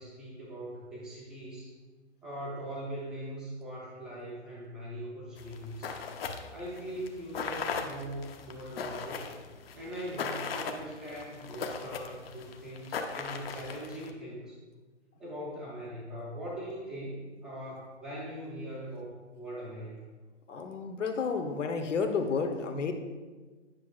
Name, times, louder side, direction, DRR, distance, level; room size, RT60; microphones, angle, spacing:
voice 1, 0.0-1.7 2.2-6.0 6.5-9.3 9.7-14.6 15.2-20.0, right 1 dB, ahead, -7 dB, 0.5 m, -41 dB
sound 1, 5.4-14.1, left 5 dB, 55° left, 0.7 m, -39 dB
voice 2, 20.5-22.9, left 5 dB, 85° left, 6 dB, 1.0 m, -31 dB
9.3 x 6.2 x 2.4 m, 1.3 s
hypercardioid pair, 150°, 36 cm